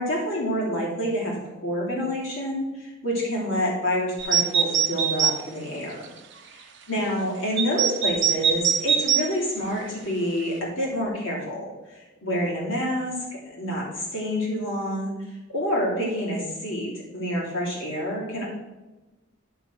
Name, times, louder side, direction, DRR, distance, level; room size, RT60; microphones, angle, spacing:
voice 1, 0.0-6.1 6.9-15.1 15.5-18.4, equal, 65° left, -4 dB, 2.9 m, -28 dB
sound 1, 4.2-5.4 6.0-6.1 7.6-9.3, right 8 dB, 60° right, 0.8 m, -22 dB
10.5 x 3.6 x 6.2 m, 1.1 s
head